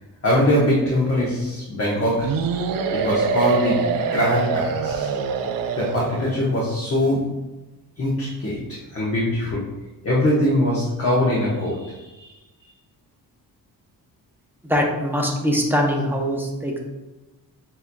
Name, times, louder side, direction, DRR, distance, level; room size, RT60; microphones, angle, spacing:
voice 1, 0.2-2.4 2.9-5.1 5.8-7.4 8.0-9.7 10.0-12.3, left 1 dB, 35° left, -6 dB, 1.0 m, -22 dB
sound 1, 2.2-6.4, right 5 dB, 60° right, 0.5 m, -25 dB
voice 2, 14.6-16.8, equal, 5° right, 0 dB, 0.8 m, -22 dB
7.2 x 2.8 x 2.3 m, 1.1 s
cardioid pair, 105°, 39 cm